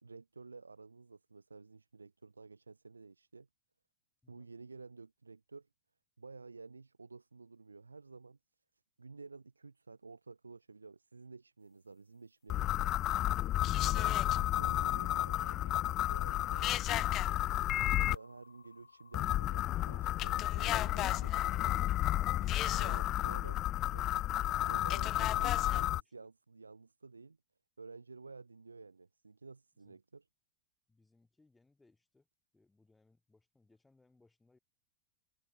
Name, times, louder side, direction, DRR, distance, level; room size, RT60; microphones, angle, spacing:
voice 1, 0.0-3.5 4.3-5.7 6.2-8.4 9.0-12.9 13.8-17.3 17.9-21.8 22.8-23.6 23.9-27.4 27.8-30.2, right 4 dB, 80° right, 3.4 m, -52 dB
sound 1, 12.5-18.2 19.1-26.0, left 14 dB, 35° left, 0.3 m, -32 dB
sound 2, 17.2-22.5, left 5 dB, 75° left, 5.9 m, -60 dB
voice 2, 25.1-26.3 29.8-30.0 30.9-32.3 32.5-34.6, left 3 dB, 10° left, 5.5 m, -69 dB
figure-of-eight pair, 90°, 0 cm